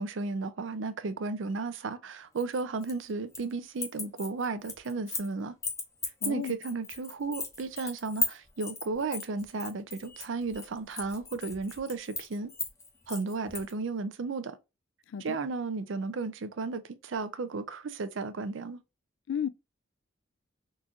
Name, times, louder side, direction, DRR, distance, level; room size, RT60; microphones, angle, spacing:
voice 1, 0.0-5.5 6.3-12.5 13.1-14.6 15.2-18.8, right 3 dB, 70° right, 0.5 m, -34 dB
sound 1, 2.4-3.5 3.8-5.3 5.6-13.7, left 3 dB, 15° left, 0.6 m, -37 dB
voice 2, 6.2-6.6 15.1-15.4 19.3-19.5, left 8 dB, 70° left, 0.3 m, -33 dB
3.8 x 2.4 x 2.8 m
head